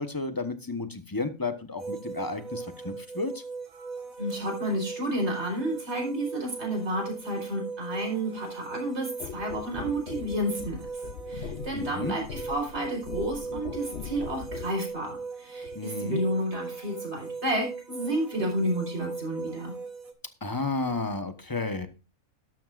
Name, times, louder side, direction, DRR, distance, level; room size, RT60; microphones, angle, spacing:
voice 1, 0.0-3.4 11.7-12.2 15.7-16.2 20.4-21.9, left 3 dB, 15° left, 9 dB, 1.0 m, -32 dB
sound 1, 1.8-20.1, right 4 dB, 75° right, 2.1 m, -39 dB
voice 2, 4.2-10.9 11.3-19.7, right 1 dB, 50° right, 1 dB, 4.9 m, -31 dB
sound 2, 9.2-14.8 15.6-15.8, left 6 dB, 55° left, 1.0 m, -40 dB
12.5 x 12.0 x 2.5 m, 0.30 s
omnidirectional pair, 1.4 m